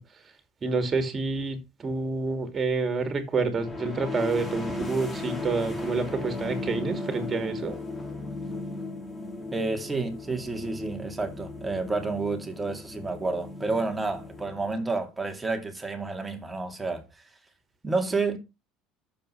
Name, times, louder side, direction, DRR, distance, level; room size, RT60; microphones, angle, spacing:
voice 1, 0.6-1.6 1.8-7.8, right 4 dB, 35° right, 2.7 m, -28 dB
sound 1, 3.5-15.0, left 2 dB, 20° left, 3.3 m, -36 dB
voice 2, 9.5-17.2 17.8-18.4, right 3 dB, 15° right, 2.4 m, -30 dB
7.3 x 5.3 x 5.8 m
hypercardioid pair, 75°, 0 cm